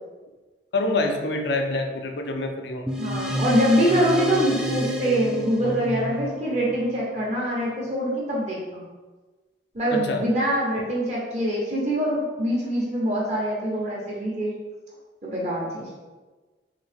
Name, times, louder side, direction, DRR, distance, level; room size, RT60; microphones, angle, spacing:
voice 1, 0.7-2.9 9.9-10.2, left 2 dB, 75° left, 4 dB, 0.5 m, -26 dB
sound 1, 2.9-7.7, equal, 5° right, 0.3 m, -30 dB
voice 2, 3.0-8.8 9.7-14.5 15.2-15.9, equal, 40° right, -5 dB, 0.9 m, -24 dB
3.8 x 2.8 x 3.3 m, 1.3 s
head